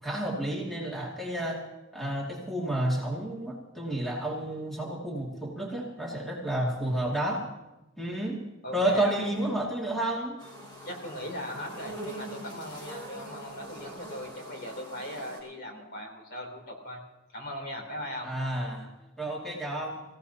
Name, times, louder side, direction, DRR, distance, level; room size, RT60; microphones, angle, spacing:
voice 1, 0.0-1.6 1.9-7.4 8.0-8.4 8.7-10.4 18.2-18.9 19.2-20.0, right 1 dB, ahead, -3 dB, 2.3 m, -30 dB
voice 2, 8.6-9.2 10.8-17.0 17.3-18.3, equal, 50° left, 2 dB, 3.4 m, -38 dB
sound 1, 10.4-15.4, right 1 dB, 20° left, 6.8 m, -43 dB
24.5 x 16.0 x 2.9 m, 1.0 s
head